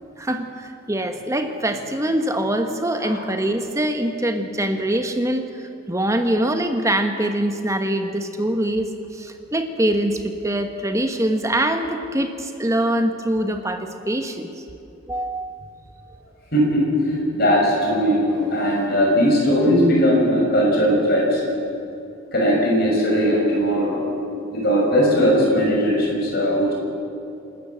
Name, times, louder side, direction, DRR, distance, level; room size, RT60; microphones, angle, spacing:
voice 1, 0.2-14.5 15.1-15.5, right 1 dB, 15° right, 6 dB, 1.2 m, -23 dB
voice 2, 16.5-21.4 22.3-24.0 24.5-26.7, equal, 50° left, -2 dB, 6.5 m, -19 dB
27.5 x 13.5 x 7.9 m, 2.6 s
head